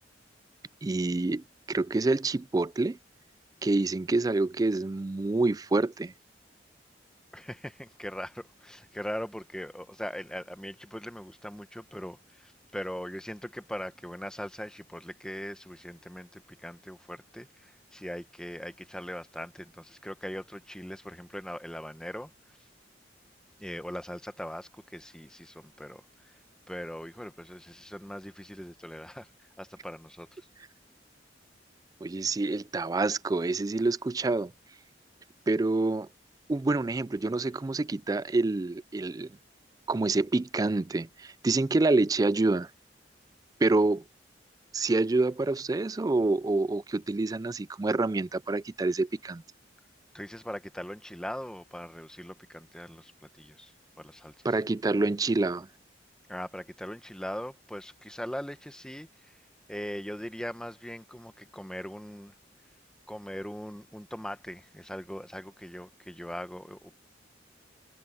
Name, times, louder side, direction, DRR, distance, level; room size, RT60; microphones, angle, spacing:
voice 1, 0.8-3.0 3.6-6.1 32.0-34.5 35.5-36.1 36.5-39.3 39.9-42.7 43.6-44.0 44.7-49.4 54.4-55.7, right 2 dB, 20° right, 0.3 m, -27 dB
voice 2, 7.3-22.3 23.6-26.4 26.7-29.3 29.6-30.5 50.1-54.5 56.3-59.4 59.7-62.3 63.1-66.9, equal, 5° left, 1.1 m, -40 dB
head